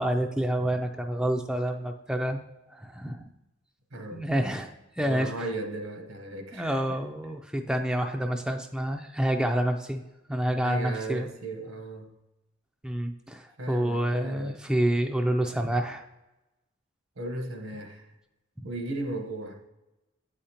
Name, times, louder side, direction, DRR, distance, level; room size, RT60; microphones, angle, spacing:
voice 1, 0.0-2.4 2.7-3.2 4.1-5.3 6.5-10.0 10.3-11.3 12.8-16.0, right 1 dB, 5° right, 4 dB, 0.3 m, -28 dB
voice 2, 3.9-4.3 5.0-6.8 10.6-12.1 13.6-14.5 17.2-18.1 18.6-19.6, right 2 dB, 80° right, 4 dB, 1.0 m, -36 dB
8.3 x 5.0 x 2.8 m, 1.0 s
head